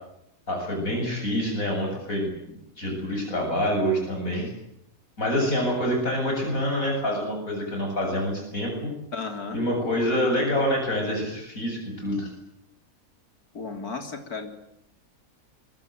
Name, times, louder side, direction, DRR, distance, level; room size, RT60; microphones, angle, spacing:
voice 1, 0.5-4.5 5.2-8.9 9.5-12.3, equal, 65° left, 0 dB, 8.5 m, -26 dB
voice 2, 9.1-9.6 13.5-14.5, left 4 dB, 85° left, 6 dB, 3.9 m, -34 dB
25.0 x 24.0 x 9.3 m, 0.79 s
omnidirectional pair, 1.6 m